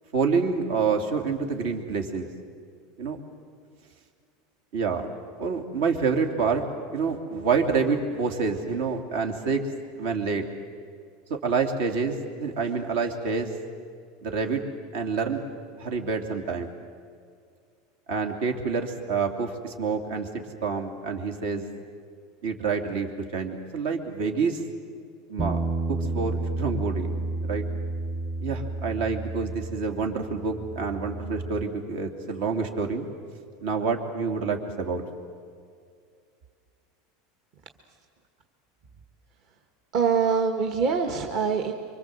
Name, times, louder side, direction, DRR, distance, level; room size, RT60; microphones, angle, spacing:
voice 1, 0.1-2.3 3.0-3.2 4.7-5.1 5.4-6.6 6.9-9.6 10.0-10.4 11.3-13.5 14.2-14.6 14.9-15.4 15.8-16.7 18.1-20.3 20.6-21.6 22.4-24.6 25.3-25.6 25.9-27.1 27.4-27.6 28.4-33.1 33.6-35.0, right 5 dB, 70° right, 4 dB, 3.0 m, -27 dB
Bass guitar, 25.4-31.6, right 2 dB, 10° right, 0.6 m, -31 dB
voice 2, 39.9-41.7, right 6 dB, 40° right, 4 dB, 1.5 m, -24 dB
26.5 x 24.5 x 7.9 m, 2.2 s
supercardioid pair, 165°, 0 cm